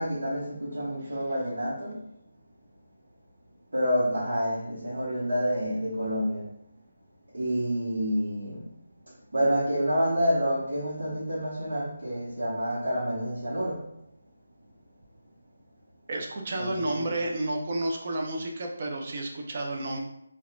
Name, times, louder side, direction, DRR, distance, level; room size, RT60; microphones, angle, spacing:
voice 1, 0.0-2.0 3.7-6.5 7.3-8.7 9.3-13.9 16.5-16.7 16.9-17.1, equal, 80° right, -8 dB, 1.1 m, -28 dB
voice 2, 16.1-20.0, right 1 dB, 45° right, 1 dB, 0.6 m, -31 dB
4.2 x 2.3 x 2.4 m, 0.78 s
figure-of-eight pair, 165°, 0 cm